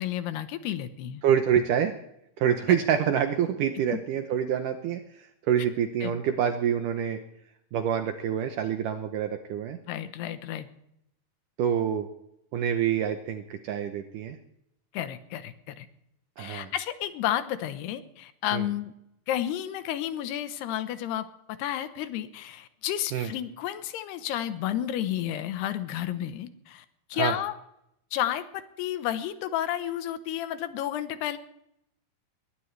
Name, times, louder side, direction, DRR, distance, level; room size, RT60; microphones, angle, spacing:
voice 1, 0.0-1.2 6.0-6.1 9.9-10.7 14.9-15.9 16.4-18.9 19.3-26.9 27.1-27.5 28.1-31.4, left 11 dB, 85° left, 11 dB, 3.0 m, -31 dB
voice 2, 1.2-1.9 2.4-5.0 5.5-7.2 7.7-9.8 11.6-12.1 12.5-14.4 16.4-16.7 18.5-18.7 23.1-23.3 27.1-27.3, right 9 dB, 75° right, 7 dB, 2.0 m, -26 dB
21.5 x 17.5 x 3.3 m, 0.79 s
omnidirectional pair, 4.6 m